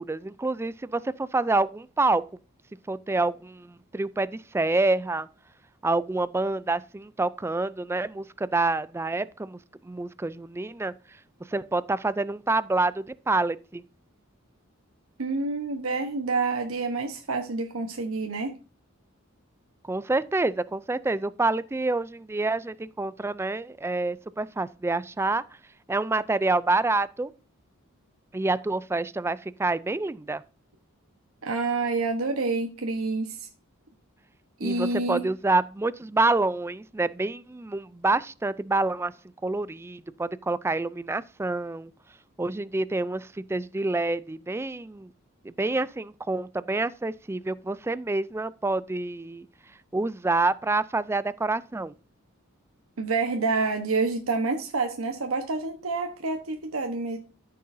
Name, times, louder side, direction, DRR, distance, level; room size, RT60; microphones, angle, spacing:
voice 1, 0.0-2.2 2.9-5.3 5.8-9.6 9.8-10.9 11.5-13.8 19.9-25.4 25.9-27.3 28.3-30.4 34.6-39.1 39.4-41.9 42.4-45.1 45.4-49.5 49.9-51.9, right 2 dB, 10° right, 0.3 m, -27 dB
voice 2, 15.2-18.5 31.4-33.5 34.6-35.3 53.0-57.2, right 3 dB, 85° right, 1.0 m, -28 dB
13.5 x 6.6 x 2.6 m
head